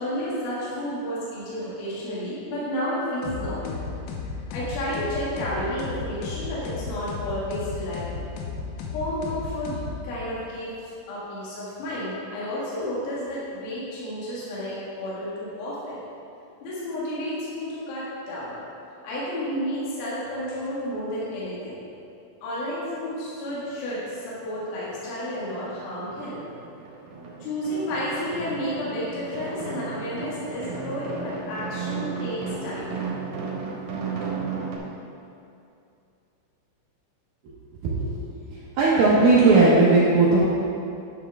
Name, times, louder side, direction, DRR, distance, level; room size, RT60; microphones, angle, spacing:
voice 1, 0.0-3.9 4.5-8.2 8.9-16.0 16.6-18.6 19.0-21.8 22.4-26.4 27.4-32.9, equal, 65° left, -8 dB, 3.5 m, -31 dB
sound 1, 3.2-10.4, left 4 dB, 80° left, 3.1 m, -34 dB
sound 2, 23.6-23.7 24.0-25.2 25.4-34.8, right 4 dB, 65° right, 2.4 m, -35 dB
voice 2, 37.8-38.2 38.8-40.4, right 3 dB, 85° right, -8 dB, 2.1 m, -17 dB
11.5 x 6.0 x 3.5 m, 2.6 s
omnidirectional pair, 5.8 m